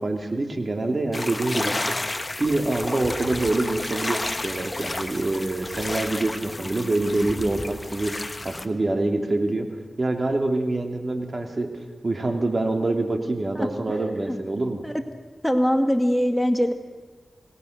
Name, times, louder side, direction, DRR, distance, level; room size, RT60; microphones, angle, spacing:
voice 1, 0.0-1.9 2.4-8.1 8.4-9.7 10.0-14.8, right 2 dB, 45° right, 5 dB, 2.7 m, -25 dB
sound 1, 1.1-8.7, left 2 dB, 30° left, 1.4 m, -31 dB
voice 2, 15.4-16.7, equal, 5° left, 6 dB, 2.0 m, -22 dB
28.5 x 20.0 x 6.6 m, 1.4 s
cardioid pair, 55°, 0 cm